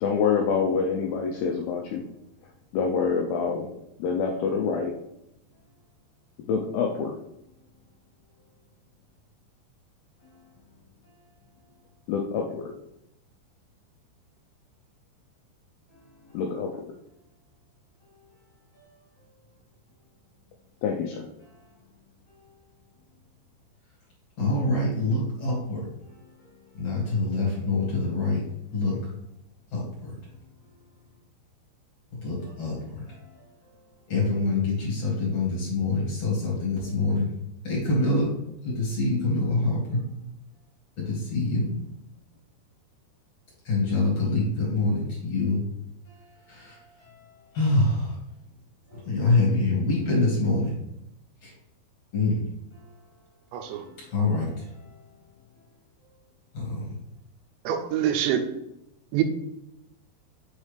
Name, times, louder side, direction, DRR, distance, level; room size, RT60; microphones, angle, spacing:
voice 1, 0.0-2.0 2.7-4.9 6.5-7.2 12.1-12.7 16.3-16.7 20.8-21.3, left 5 dB, 85° left, 1 dB, 2.2 m, -26 dB
voice 2, 24.4-25.8 26.8-28.4 28.7-29.0 29.7-30.1 32.2-32.8 33.1-33.4 34.1-37.3 37.6-38.3 38.6-40.0 41.0-41.7 43.6-45.6 46.5-47.2 47.5-48.1 48.9-50.8 51.4-51.5 52.1-52.4 53.6-54.8 56.5-56.9, left 2 dB, 45° left, -5 dB, 2.5 m, -25 dB
voice 3, 53.5-53.8 57.7-58.5 59.1-59.2, right 10 dB, 90° right, 7 dB, 2.9 m, -25 dB
7.2 x 4.3 x 3.3 m, 0.82 s
omnidirectional pair, 5.1 m